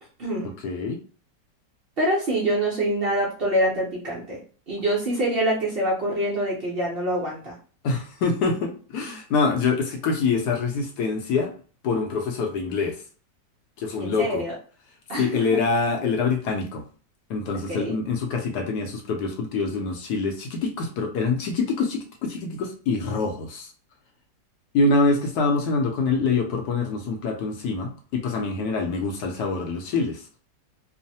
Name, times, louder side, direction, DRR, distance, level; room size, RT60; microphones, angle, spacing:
voice 1, 0.6-1.0 7.8-11.5 11.8-13.0 13.8-14.4 15.2-16.8 17.3-23.7 24.7-30.2, left 4 dB, 70° left, 2 dB, 1.1 m, -25 dB
voice 2, 2.0-4.4 4.7-7.6 14.0-14.5 15.1-15.4 17.7-18.0, right 1 dB, 65° right, -4 dB, 0.5 m, -25 dB
3.0 x 2.0 x 2.7 m, 0.39 s
omnidirectional pair, 2.0 m